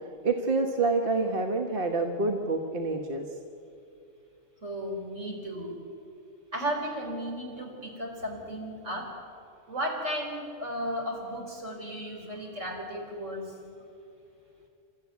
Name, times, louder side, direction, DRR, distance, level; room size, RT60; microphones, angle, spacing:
voice 1, 0.2-3.3, right 3 dB, 45° right, 3 dB, 1.4 m, -27 dB
voice 2, 4.6-5.8 6.5-9.1 9.7-13.5, equal, 70° right, 0 dB, 4.7 m, -34 dB
28.0 x 13.5 x 9.5 m, 2.6 s
omnidirectional pair, 1.3 m